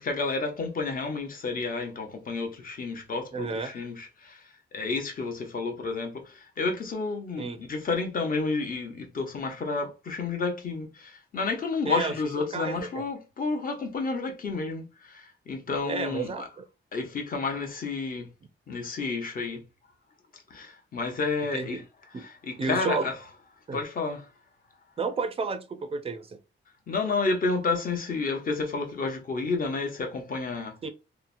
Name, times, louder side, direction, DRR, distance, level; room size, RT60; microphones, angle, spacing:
voice 1, 0.0-4.4 4.7-16.5 16.9-18.3 18.7-19.6 20.5-21.8 22.1-23.1 23.7-24.3 26.9-30.8, left 4 dB, 45° left, 0.7 m, -30 dB
voice 2, 3.3-3.7 7.4-7.6 11.9-12.1 12.5-13.0 15.8-16.6 21.5-21.8 22.1-22.2 22.6-23.1 23.7-23.8 25.0-26.4 30.8-30.9, right 4 dB, 30° right, 0.4 m, -31 dB
2.8 x 2.0 x 2.5 m
wide cardioid pair, 160°, 20 cm